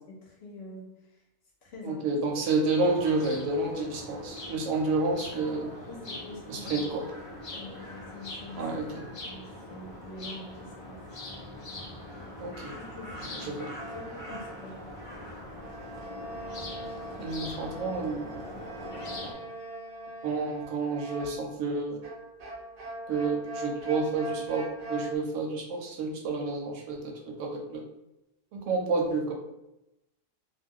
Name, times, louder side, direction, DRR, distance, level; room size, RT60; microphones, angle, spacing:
voice 1, 0.1-1.2 1.6-2.0 5.8-6.9 7.5-8.6 9.3-11.0 12.7-13.7 13.9-14.8, left 2 dB, 60° left, -2 dB, 0.8 m, -45 dB
voice 2, 1.8-5.7 6.5-7.0 8.6-9.0 12.4-12.7 13.3-13.7 17.2-18.4 20.2-22.0 23.1-27.1 27.4-27.8 28.5-29.3, right 3 dB, 75° right, 0 dB, 0.9 m, -30 dB
sound 1, 2.9-19.3, left 1 dB, 45° left, 0.4 m, -42 dB
sound 2, 13.8-14.7 15.4-21.5 22.0-25.2, right 1 dB, 50° right, 0.4 m, -41 dB
2.4 x 2.1 x 3.5 m, 0.90 s
omnidirectional pair, 1.3 m